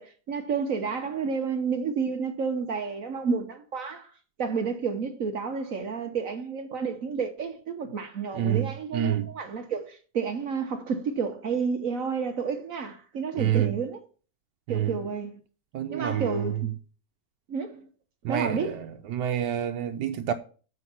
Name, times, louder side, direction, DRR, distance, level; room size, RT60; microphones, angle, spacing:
voice 1, 0.0-4.1 4.4-14.0 14.7-15.4 15.9-16.7 17.5-17.8 18.3-18.7, right 5 dB, 55° right, 1.2 m, -30 dB
voice 2, 8.3-9.3 13.4-13.7 14.7-15.0 15.7-16.6 18.2-20.3, right 10 dB, 80° right, 1.3 m, -28 dB
7.8 x 5.3 x 5.7 m
omnidirectional pair, 1.9 m